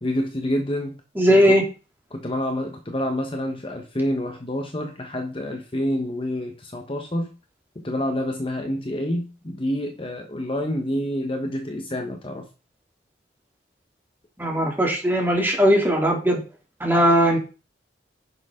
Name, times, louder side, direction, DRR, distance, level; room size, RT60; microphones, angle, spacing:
voice 1, 0.0-1.0 1.3-1.5 2.1-7.3 7.7-12.5, left 1 dB, 30° left, 4 dB, 1.1 m, -28 dB
voice 2, 1.2-1.6 14.4-16.4 16.8-17.4, equal, 10° right, 0 dB, 2.8 m, -18 dB
10.5 x 6.5 x 3.7 m, 0.33 s
head